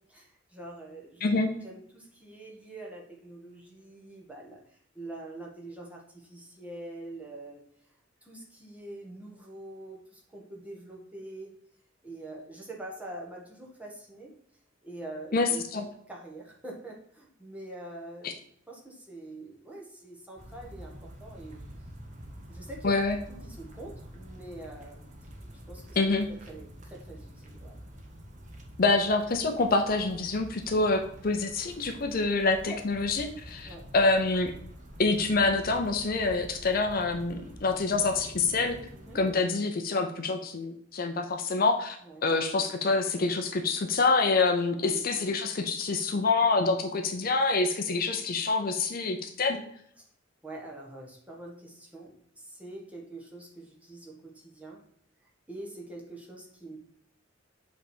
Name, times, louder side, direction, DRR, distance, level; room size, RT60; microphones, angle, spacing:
voice 1, 0.0-1.2 1.6-7.6 8.2-11.5 12.0-14.3 14.8-18.4 18.7-21.6 22.5-25.1 25.7-26.0 26.3-27.8 32.6-32.8 33.6-33.9 38.9-39.2 42.0-42.2 44.9-45.0 50.0-50.1 50.4-54.8 55.5-56.8, right 2 dB, 5° right, -2 dB, 1.4 m, -45 dB
voice 2, 15.3-15.8 18.2-18.3 22.8-23.2 26.0-26.3 28.8-34.5 35.0-38.8 39.1-42.0 42.2-49.6, left 3 dB, 45° left, 6 dB, 0.5 m, -26 dB
sound 1, 20.4-39.3, equal, 40° right, 1.1 m, -47 dB
7.6 x 3.4 x 4.4 m, 0.68 s
head